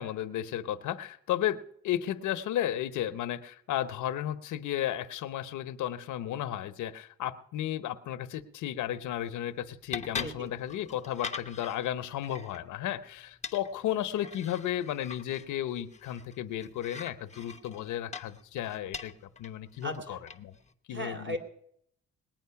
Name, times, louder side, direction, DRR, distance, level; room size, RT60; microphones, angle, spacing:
voice 1, 0.0-19.1 19.4-20.5 20.9-21.4, left 11 dB, 80° left, 12 dB, 0.8 m, -34 dB
sound 1, 8.8-20.7, left 5 dB, 25° left, 0.8 m, -44 dB
voice 2, 19.8-20.2 20.9-21.4, left 1 dB, 40° right, 4 dB, 3.1 m, -36 dB
20.0 x 9.1 x 5.7 m, 0.70 s
cardioid pair, 90°, 30 cm